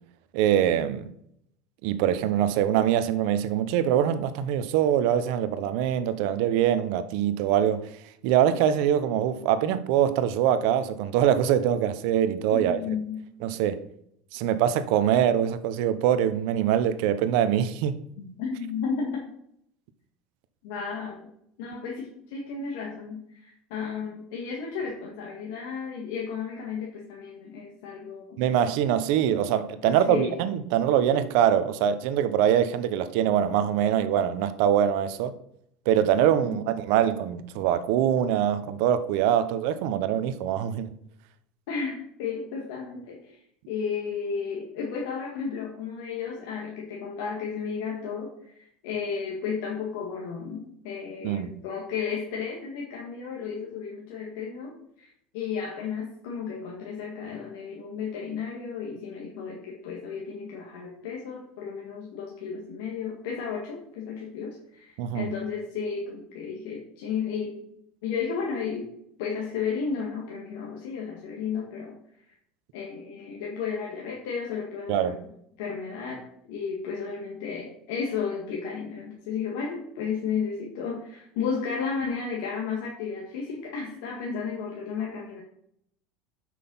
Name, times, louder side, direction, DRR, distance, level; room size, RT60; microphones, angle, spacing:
voice 1, 0.3-1.1 1.8-7.9 8.2-12.8 13.4-13.8 14.3-18.0 28.4-35.3 35.9-40.9 51.2-51.5 65.0-65.3 74.9-75.2, right 10 dB, 70° right, 0.8 m, -23 dB
voice 2, 12.5-13.2 18.2-19.2 20.6-21.3 21.6-28.4 29.8-30.3 41.7-43.4 43.7-67.6 68.0-68.9 69.2-72.0 72.2-72.3 72.7-75.3 75.6-85.4, left 6 dB, 80° left, 1.9 m, -33 dB
6.5 x 5.9 x 5.5 m
supercardioid pair, 115°, 0 cm